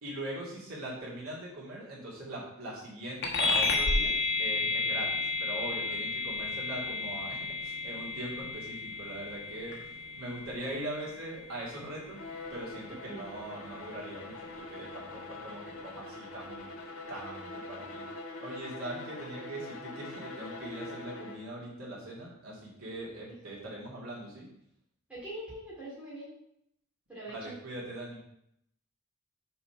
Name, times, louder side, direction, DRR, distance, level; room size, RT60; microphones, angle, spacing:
voice 1, 0.0-9.8 10.1-12.2 12.5-16.7 17.1-18.0 18.4-24.5 27.3-28.2, right 1 dB, 85° right, -6 dB, 2.6 m, -41 dB
sound 1, 3.2-13.1, left 3 dB, 55° left, 1.3 m, -32 dB
Bowed string instrument, 12.1-21.6, left 2 dB, 80° left, 1.4 m, -44 dB
voice 2, 25.1-26.3 27.1-27.5, right 1 dB, 5° right, -8 dB, 2.3 m, -43 dB
7.0 x 4.4 x 5.6 m, 0.76 s
head